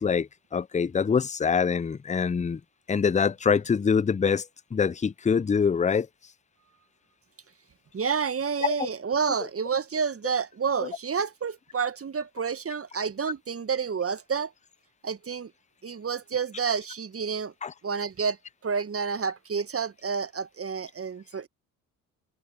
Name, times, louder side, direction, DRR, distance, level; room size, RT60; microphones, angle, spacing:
voice 1, 0.0-2.6 2.9-4.4 4.7-6.1 8.6-8.9 10.8-10.9 17.6-17.7, left 6 dB, 15° left, 0.7 m, -24 dB
voice 2, 7.9-14.5 15.0-15.5 15.8-17.5 17.8-18.4 18.6-21.5, right 6 dB, 30° right, 1.9 m, -29 dB
figure-of-eight pair, 45°, 48 cm